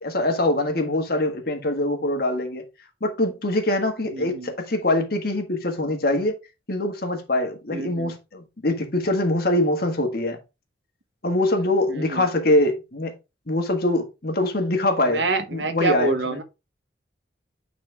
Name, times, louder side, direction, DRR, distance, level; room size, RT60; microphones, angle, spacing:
voice 1, 0.0-2.6 3.0-6.4 6.7-10.4 11.2-13.2 13.5-15.3 15.5-16.4, left 1 dB, 55° left, 1.6 m, -23 dB
voice 2, 4.1-4.5 7.7-8.1 11.9-12.3 15.0-16.4, right 3 dB, 75° right, 1.1 m, -27 dB
8.7 x 4.2 x 3.4 m
head